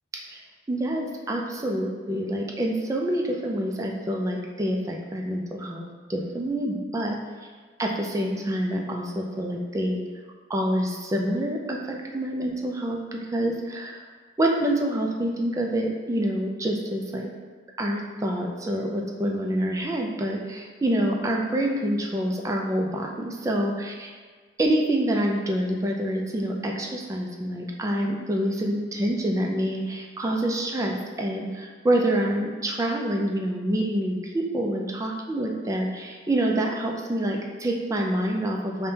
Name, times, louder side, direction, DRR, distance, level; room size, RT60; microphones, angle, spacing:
voice 1, 0.7-7.2 7.8-10.0 10.5-14.0 14.4-17.3 17.8-24.1 24.6-38.9, right 1 dB, 15° right, 0 dB, 0.3 m, -27 dB
5.3 x 2.1 x 2.7 m, 1.5 s
head